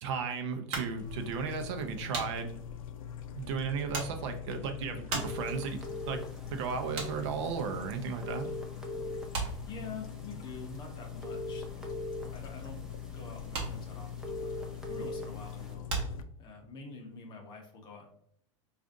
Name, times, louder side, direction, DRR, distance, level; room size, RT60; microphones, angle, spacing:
voice 1, 0.0-2.6 3.4-5.8 6.1-6.2 6.5-8.5, right 6 dB, 55° right, 6 dB, 0.6 m, -35 dB
sound 1, 0.7-8.6 8.8-16.9, right 3 dB, 35° right, 1.0 m, -40 dB
sound 2, 1.0-16.2, left 8 dB, 85° left, 0.5 m, -43 dB
sound 3, 5.1-15.7, left 1 dB, 5° right, 0.4 m, -43 dB
voice 2, 9.6-12.0 12.3-12.8 13.1-15.9 16.4-18.1, left 4 dB, 25° left, 2 dB, 0.8 m, -47 dB
4.8 x 2.4 x 2.5 m, 0.68 s
supercardioid pair, 145°, 17 cm